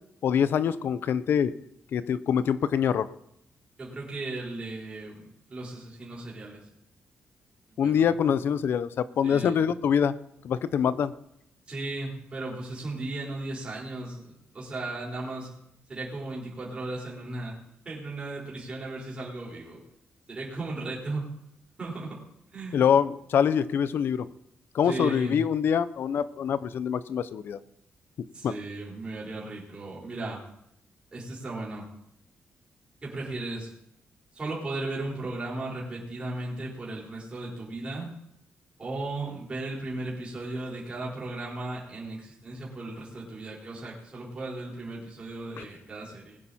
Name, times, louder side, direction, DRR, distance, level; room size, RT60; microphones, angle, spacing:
voice 1, 0.2-1.5 1.9-3.1 7.8-10.1 10.4-11.1 22.7-24.3 24.7-27.6 28.4-28.5 45.6-45.7, left 8 dB, 60° left, 15 dB, 0.7 m, -25 dB
voice 2, 3.8-6.7 7.7-8.0 9.2-9.6 11.7-15.5 15.9-17.6 17.8-19.8 20.3-21.2 21.8-22.2 22.5-22.9 24.8-25.4 28.3-30.4 31.1-31.8 33.0-33.7 34.3-38.1 38.8-46.4, right 2 dB, 25° right, -5 dB, 4.5 m, -36 dB
20.0 x 10.0 x 4.3 m, 0.78 s
wide cardioid pair, 180°, 4 cm